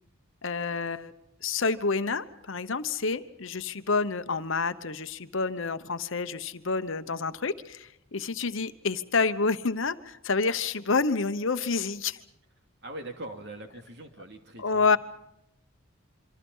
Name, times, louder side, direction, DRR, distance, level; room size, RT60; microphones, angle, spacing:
voice 1, 0.4-1.1 1.4-12.2 14.6-15.0, left 4 dB, 65° left, 11 dB, 1.0 m, -28 dB
voice 2, 12.8-15.0, right 1 dB, 55° right, 4 dB, 2.7 m, -42 dB
26.5 x 24.5 x 5.6 m, 0.82 s
head